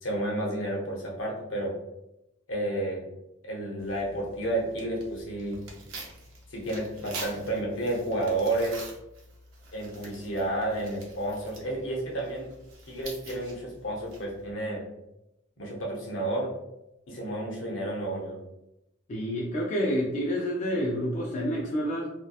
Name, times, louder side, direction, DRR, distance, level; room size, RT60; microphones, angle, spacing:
voice 1, 0.0-1.7 2.5-3.1 3.4-5.6 6.5-8.9 9.7-12.5 12.9-14.8 15.6-16.5 17.1-18.4, right 1 dB, 75° left, -2 dB, 0.8 m, -31 dB
Tearing, 3.8-14.5, right 2 dB, 75° right, 0.6 m, -46 dB
voice 2, 19.1-22.1, equal, 35° left, -4 dB, 0.4 m, -28 dB
2.7 x 2.1 x 2.3 m, 0.89 s
head